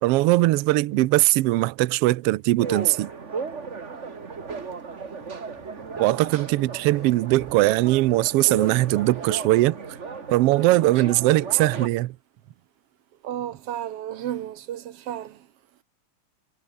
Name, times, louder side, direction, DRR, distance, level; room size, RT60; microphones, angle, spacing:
voice 1, 0.0-3.1 6.0-9.7 10.3-12.1, right 18 dB, 85° right, 1.3 m, -20 dB
sound 1, 2.6-11.9, right 5 dB, 30° right, 1.6 m, -35 dB
sound 2, 4.5-9.6, right 1 dB, 5° right, 6.2 m, -55 dB
voice 2, 13.2-15.5, right 11 dB, 65° right, 1.7 m, -33 dB
omnidirectional pair, 3.4 m